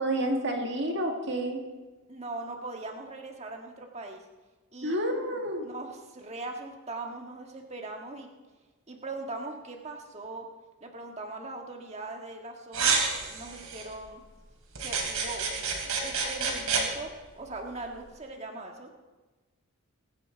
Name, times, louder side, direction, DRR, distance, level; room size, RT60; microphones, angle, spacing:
voice 1, 0.0-1.6 4.8-5.6, right 1 dB, 55° right, 2 dB, 2.0 m, -29 dB
voice 2, 2.1-4.2 4.7-5.0 5.6-8.3 8.9-10.5 10.8-13.0 13.3-14.2 14.8-18.9, right 2 dB, 30° right, 2 dB, 1.6 m, -40 dB
sound 1, 12.7-13.9 14.8-16.8, right 5 dB, 80° right, 3.3 m, -29 dB
23.0 x 9.5 x 4.5 m, 1.2 s
head